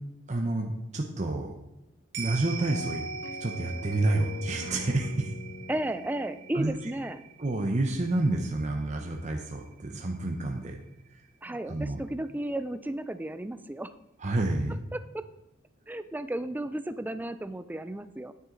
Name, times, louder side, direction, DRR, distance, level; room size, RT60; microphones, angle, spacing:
voice 1, 0.3-1.5 2.2-3.0 3.4-5.3 6.5-6.7 7.4-10.8 11.5-12.0 14.2-14.8, right 2 dB, 35° right, 1 dB, 0.8 m, -29 dB
sound 1, 2.1-10.7 11.1-11.2, right 7 dB, 60° right, 2.1 m, -44 dB
sound 2, 2.6-7.7, left 1 dB, 55° left, 0.7 m, -42 dB
voice 2, 5.7-7.2 11.4-13.9 14.9-15.2 15.9-18.3, right 1 dB, 10° right, 12 dB, 0.4 m, -34 dB
9.5 x 9.5 x 3.9 m, 0.92 s
head